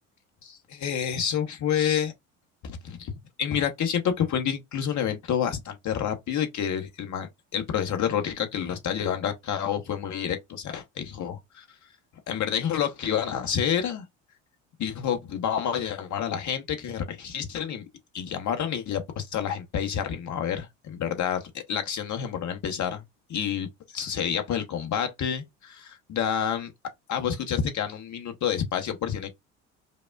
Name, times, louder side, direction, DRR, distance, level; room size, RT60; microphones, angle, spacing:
voice 1, 0.4-2.1 2.6-3.1 3.4-11.7 12.3-14.0 14.8-17.8 18.1-23.0 23.3-26.7 27.1-29.3, left 8 dB, 45° left, 1.1 m, -29 dB
5.2 x 2.1 x 2.4 m
hypercardioid pair, 65°, 40 cm